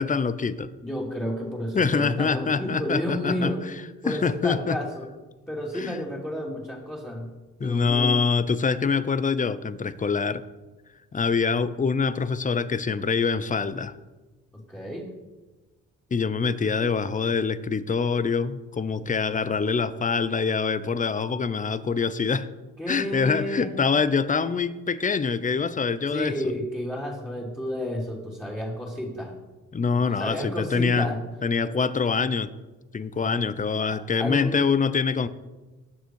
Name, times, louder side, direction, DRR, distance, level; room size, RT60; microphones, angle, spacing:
voice 1, 0.0-0.7 1.7-3.5 4.1-4.8 5.7-6.0 7.6-10.4 11.1-13.9 16.1-22.5 22.9-26.5 29.7-31.1 31.4-32.5 32.9-35.3, left 5 dB, 25° left, 15 dB, 0.7 m, -25 dB
voice 2, 0.8-3.6 4.0-5.1 5.5-7.3 7.6-8.2 14.5-15.1 22.8-23.7 26.1-29.3 29.9-31.2 33.2-33.3 33.9-34.6, left 1 dB, 5° left, -5 dB, 3.0 m, -31 dB
19.0 x 6.7 x 4.7 m, 1.2 s
cardioid pair, 90°, 30 cm